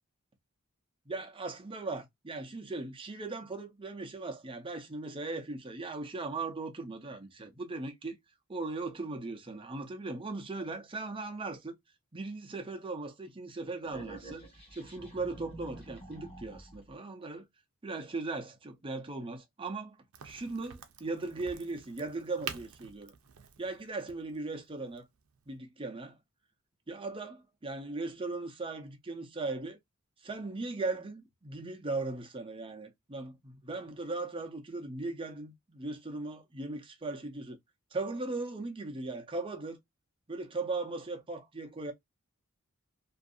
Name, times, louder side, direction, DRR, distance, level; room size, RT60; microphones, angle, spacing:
voice 1, 1.1-8.2 8.5-11.8 12.1-14.4 14.7-17.5 17.8-23.1 23.6-25.1 25.5-26.2 26.9-29.8 30.2-37.6 37.9-39.8 40.3-41.9, right 3 dB, 25° right, 0.6 m, -38 dB
sound 1, 13.8-16.9, right 2 dB, 30° left, 1.3 m, -48 dB
Crack, 20.1-25.6, right 8 dB, 75° right, 0.5 m, -47 dB
2.6 x 2.5 x 2.4 m
head